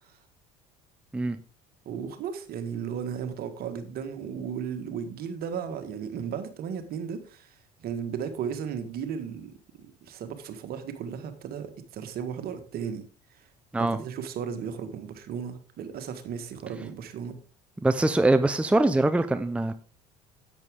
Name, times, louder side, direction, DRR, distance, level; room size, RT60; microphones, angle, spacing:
voice 1, 1.9-13.0 13.8-17.4, right 7 dB, 50° right, 1.6 m, -35 dB
voice 2, 17.8-19.8, right 2 dB, 5° right, 0.7 m, -23 dB
10.5 x 8.4 x 3.7 m
hypercardioid pair, 65°, 20 cm